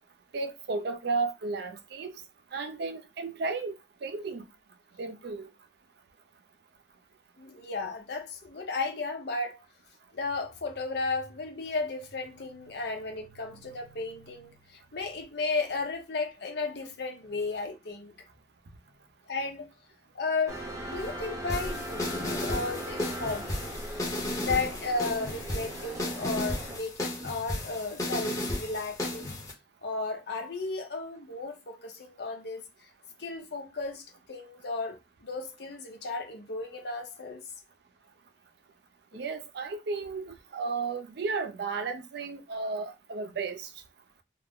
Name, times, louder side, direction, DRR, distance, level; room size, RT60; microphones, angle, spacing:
voice 1, 0.3-2.1 2.5-4.4 5.0-5.5 39.1-43.7, right 4 dB, 55° right, 0.4 m, -33 dB
voice 2, 7.4-9.6 10.1-18.1 19.3-19.7 20.1-29.4 29.8-32.9 33.2-37.4, left 3 dB, 60° left, 0.7 m, -34 dB
sound 1, 20.5-26.8, right 1 dB, 15° right, 0.7 m, -39 dB
sound 2, 21.5-29.5, left 1 dB, 20° left, 0.7 m, -34 dB
2.3 x 2.0 x 3.5 m
head